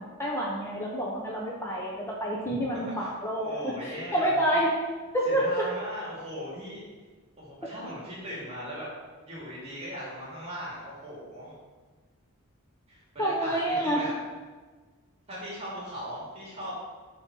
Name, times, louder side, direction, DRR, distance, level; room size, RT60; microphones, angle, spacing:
voice 1, 0.0-4.8 5.1-5.5 13.2-14.0, right 1 dB, 10° left, -3 dB, 0.9 m, -28 dB
voice 2, 2.4-4.6 5.2-6.8 7.4-8.9 9.2-11.5 12.9-14.1 15.3-16.8, equal, 25° right, -6 dB, 2.6 m, -39 dB
10.5 x 4.4 x 6.2 m, 1.4 s
head